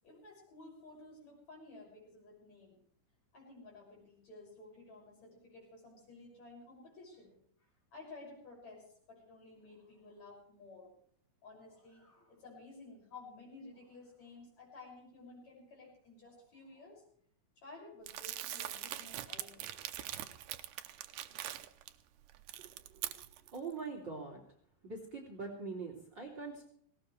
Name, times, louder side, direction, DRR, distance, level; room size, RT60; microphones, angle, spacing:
voice 1, 0.0-2.8 3.3-7.4 7.9-10.9 11.4-17.0 17.6-19.7, left 3 dB, 45° left, -1 dB, 7.5 m, -54 dB
Crumpling crinkling, 18.1-21.9 22.3-23.6, right 13 dB, 75° right, 2.0 m, -42 dB
voice 2, 22.6-23.1 23.5-24.4 24.8-26.7, right 4 dB, 30° right, -1 dB, 3.6 m, -43 dB
19.5 x 18.5 x 3.3 m, 0.63 s
omnidirectional pair, 4.3 m